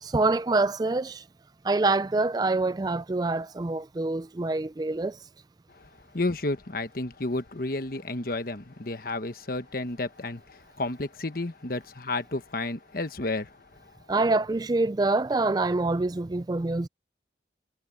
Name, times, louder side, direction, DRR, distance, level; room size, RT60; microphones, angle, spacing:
voice 1, 0.0-1.2 1.6-5.2 14.1-16.9, right 3 dB, 20° right, 0.3 m, -26 dB
voice 2, 5.7-13.9, left 2 dB, 50° left, 1.2 m, -32 dB
head